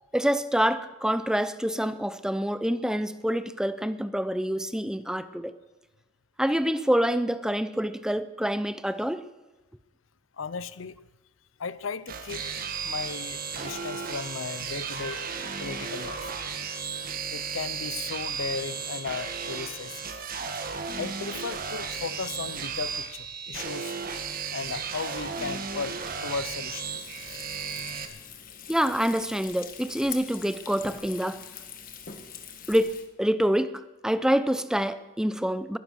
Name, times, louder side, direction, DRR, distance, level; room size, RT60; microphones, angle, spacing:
voice 1, 0.1-5.5 6.4-9.2 28.7-31.4 32.7-35.8, equal, 5° right, 0.6 m, -26 dB
voice 2, 10.4-11.0 11.6-12.4 12.8-15.2 15.6-16.3 17.3-20.0 21.0-24.0 24.5-27.1, left 5 dB, 80° left, 0.7 m, -36 dB
sound 1, 12.1-28.1, right 5 dB, 45° right, 1.6 m, -34 dB
Frying (food), 27.0-33.1, left 8 dB, 45° left, 1.5 m, -43 dB
21.0 x 10.0 x 6.5 m
head